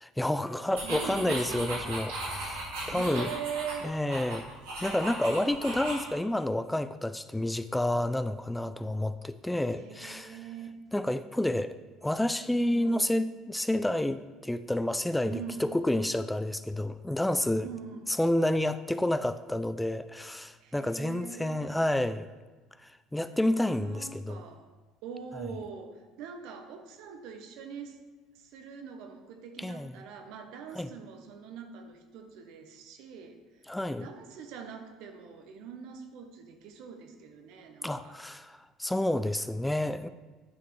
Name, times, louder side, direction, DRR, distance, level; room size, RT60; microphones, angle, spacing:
voice 1, 0.0-3.3 3.8-4.5 4.8-10.4 10.9-17.7 18.1-22.3 22.8-24.4 29.6-29.9 30.7-30.9 33.7-34.1 37.8-40.1, left 1 dB, 10° left, 12 dB, 0.3 m, -30 dB
sound 1, 0.7-6.1, right 2 dB, 90° right, 2.7 m, -37 dB
voice 2, 0.8-2.0 2.8-4.0 9.7-10.7 12.6-13.0 15.3-15.8 17.6-18.0 20.6-21.8 23.8-24.7 25.0-28.0 28.3-33.7 34.0-38.2, right 6 dB, 70° right, 6 dB, 0.9 m, -43 dB
9.5 x 5.9 x 3.2 m, 1.3 s
hypercardioid pair, 70°, 0 cm